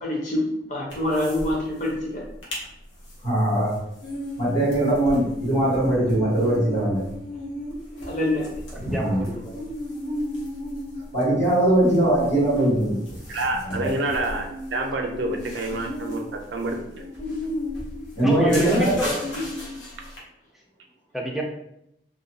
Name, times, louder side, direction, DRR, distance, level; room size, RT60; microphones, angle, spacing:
voice 1, 0.0-2.2 8.1-8.5 18.6-19.4, left 1 dB, 40° left, -3 dB, 0.8 m, -26 dB
sound 1, 0.9-1.5 1.8-1.9 2.2-2.6 3.0-20.2, left 1 dB, 90° left, 0.9 m, -35 dB
voice 2, 3.2-3.7 4.4-7.0 8.9-9.2 11.1-13.0 13.6-13.9 18.1-19.0, right 1 dB, 65° left, -13 dB, 1.3 m, -21 dB
voice 3, 8.7-9.6 18.2-19.1 21.1-21.4, equal, ahead, -2 dB, 0.4 m, -26 dB
voice 4, 13.3-17.0, right 2 dB, 75° right, 3 dB, 0.4 m, -28 dB
2.5 x 2.2 x 2.7 m, 0.78 s
head